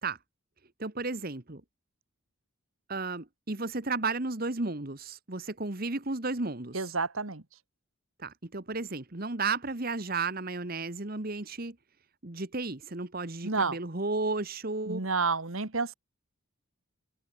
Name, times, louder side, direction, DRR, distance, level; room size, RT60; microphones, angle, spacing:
voice 1, 0.8-1.6 2.9-6.8 8.2-11.7 12.2-15.0, right 3 dB, 45° right, 1.5 m, -33 dB
voice 2, 6.7-7.4 13.4-13.8 14.9-15.9, right 4 dB, 75° right, 1.9 m, -30 dB
head